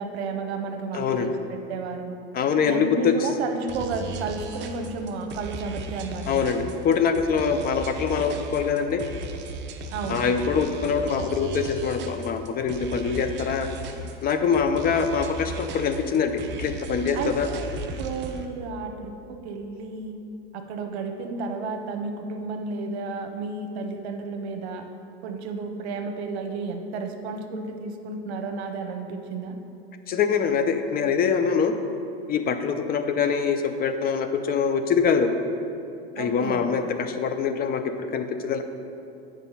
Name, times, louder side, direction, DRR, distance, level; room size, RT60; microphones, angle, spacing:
voice 1, 0.0-2.2 2.6-6.5 9.9-10.3 17.1-17.7 18.0-20.2 20.5-24.8 25.2-29.6 36.2-36.7, right 4 dB, 80° right, 5 dB, 0.9 m, -32 dB
voice 2, 0.9-1.3 2.3-3.1 6.3-9.0 10.1-13.7 14.2-17.5 30.1-31.7 32.3-35.3 36.2-37.8 38.1-38.6, left 6 dB, 30° left, 7 dB, 0.6 m, -24 dB
sound 1, 3.7-18.5, right 2 dB, 35° right, 0.7 m, -36 dB
8.3 x 5.1 x 5.6 m, 2.8 s
supercardioid pair, 115°, 32 cm